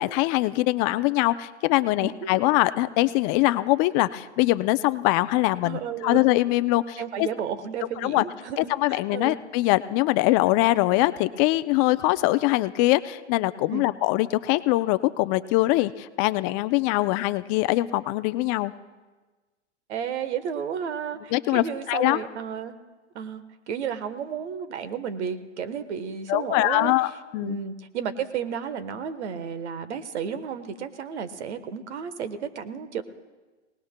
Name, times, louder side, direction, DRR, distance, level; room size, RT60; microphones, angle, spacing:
voice 1, 0.0-7.3 8.0-8.2 8.6-18.7 21.3-22.2 26.3-27.6, left 18 dB, 30° left, 13 dB, 0.4 m, -23 dB
voice 2, 5.6-6.2 7.0-9.4 13.7-13.9 19.9-22.8 23.1-26.9 27.4-33.0, right 7 dB, 70° right, 12 dB, 1.2 m, -32 dB
29.5 x 18.5 x 2.2 m, 1.3 s
hypercardioid pair, 125°, 35 cm